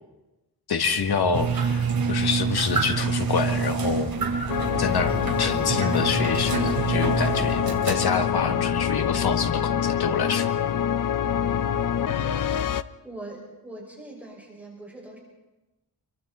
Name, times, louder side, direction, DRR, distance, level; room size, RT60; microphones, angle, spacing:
voice 1, 0.7-4.1 4.8-10.5, left 5 dB, 80° left, 7 dB, 1.7 m, -27 dB
sound 1, 1.0-8.6, right 3 dB, 45° right, 2.9 m, -41 dB
sound 2, 1.3-8.8, right 5 dB, 65° right, 2.8 m, -27 dB
sound 3, 4.5-12.8, left 9 dB, 60° left, 0.7 m, -25 dB
voice 2, 12.1-12.6 13.0-15.2, right 1 dB, 5° right, -3 dB, 5.9 m, -41 dB
27.0 x 24.0 x 4.3 m, 1.0 s
wide cardioid pair, 150°, 38 cm